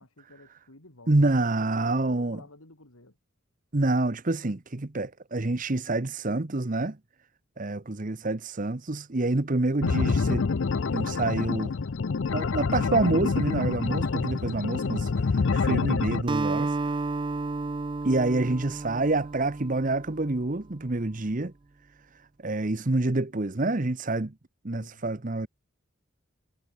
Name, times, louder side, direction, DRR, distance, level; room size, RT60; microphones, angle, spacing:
voice 1, 0.0-3.2 24.7-25.0, left 2 dB, 85° left, 4.2 m, -52 dB
voice 2, 1.1-2.4 3.7-7.0 7.6-10.5 10.9-11.8 12.3-17.0 18.0-21.5 22.4-24.3 24.6-25.5, right 2 dB, 40° right, 0.9 m, -27 dB
sound 1, 9.8-16.2, left 4 dB, 65° left, 0.5 m, -27 dB
Acoustic guitar, 16.3-20.8, right 3 dB, 25° right, 0.4 m, -32 dB
head